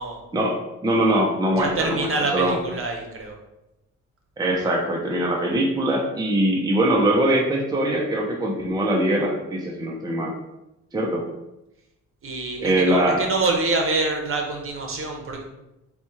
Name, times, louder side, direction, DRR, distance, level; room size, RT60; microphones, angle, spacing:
voice 1, 0.3-2.1 2.3-2.6 4.4-10.4 10.9-11.3 12.6-13.2, right 1 dB, 15° right, -1 dB, 0.7 m, -22 dB
voice 2, 1.5-3.3 12.2-15.4, right 3 dB, 45° right, 1 dB, 1.0 m, -26 dB
4.1 x 2.4 x 4.4 m, 0.91 s
cardioid pair, 90°, 30 cm